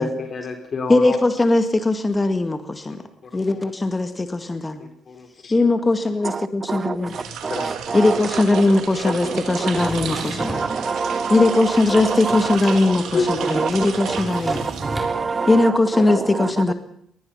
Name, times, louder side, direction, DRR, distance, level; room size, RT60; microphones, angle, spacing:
voice 1, 0.0-1.2 3.5-3.6 4.8-5.5 7.3-7.7 9.0-9.1 13.1-13.3 15.5-15.6, left 4 dB, 45° left, 4.0 m, -28 dB
voice 2, 0.9-3.0 3.3-4.8 5.5-7.2 7.9-10.6 11.3-14.6 15.5-16.7, left 2 dB, 20° left, 2.0 m, -19 dB
voice 3, 6.2-8.2 8.5-8.6 9.3-9.9 10.4-11.6 11.9-12.7 13.3-13.7 14.0-15.7 16.1-16.7, right 4 dB, 35° right, 1.4 m, -26 dB
sound 1, 7.0-15.4, right 7 dB, 80° right, 3.6 m, -33 dB
Drawer open or close, 9.7-10.7 11.3-12.8 13.0-13.1 13.4-15.1, right 1 dB, 15° right, 6.5 m, -34 dB
24.0 x 20.0 x 5.8 m
cardioid pair, 90°, 0 cm